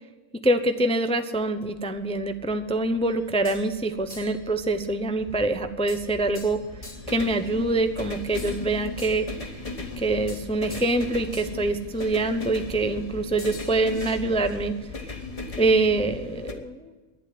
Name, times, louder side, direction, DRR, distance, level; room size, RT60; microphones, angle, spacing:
voice 1, 0.4-9.3 10.0-14.7 15.0-15.2 15.6-16.9, right 2 dB, 10° left, 8 dB, 0.3 m, -25 dB
sound 1, 1.3-16.5, left 3 dB, 25° left, 1.3 m, -38 dB
sound 2, 3.0-3.7 4.1-4.5 5.9-7.2 8.4-9.4 10.3-11.0 11.3-11.5 11.9-12.1 13.4-14.6, left 2 dB, 75° left, 3.8 m, -45 dB
11.0 x 9.6 x 9.2 m, 1.3 s
omnidirectional pair, 1.5 m